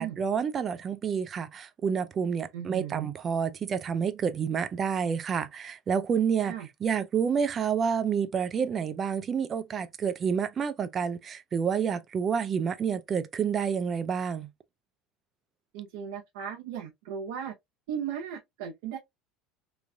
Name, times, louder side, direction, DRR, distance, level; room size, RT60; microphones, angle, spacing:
voice 1, 0.0-6.5 6.8-14.5, right 7 dB, 30° right, 0.4 m, -29 dB
voice 2, 2.5-3.1 6.5-6.7 15.7-17.5 17.9-19.0, right 8 dB, 80° right, 0.8 m, -36 dB
3.1 x 2.5 x 2.2 m
supercardioid pair, 125°, 0 cm